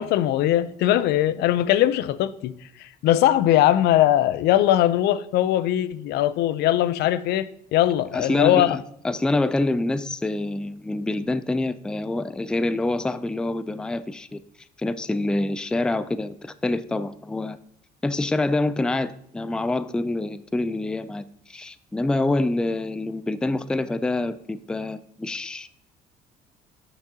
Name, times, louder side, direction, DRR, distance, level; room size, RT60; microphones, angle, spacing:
voice 1, 0.0-2.5 2.8-8.8, left 13 dB, 80° left, 0.5 m, -20 dB
voice 2, 8.1-14.4 14.8-17.6 18.0-25.8, left 2 dB, 5° left, 0.3 m, -26 dB
9.1 x 6.0 x 2.8 m
cardioid pair, 110°, 17 cm